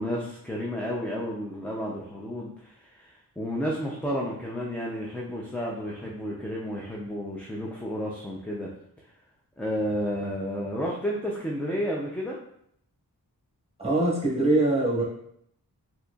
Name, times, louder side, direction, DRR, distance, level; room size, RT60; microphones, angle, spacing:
voice 1, 0.0-8.7 9.6-12.4, equal, 5° left, -3 dB, 0.5 m, -31 dB
voice 2, 13.8-15.0, right 2 dB, 15° right, -5 dB, 1.3 m, -23 dB
4.1 x 2.9 x 2.3 m, 0.70 s
wide cardioid pair, 75°, 40 cm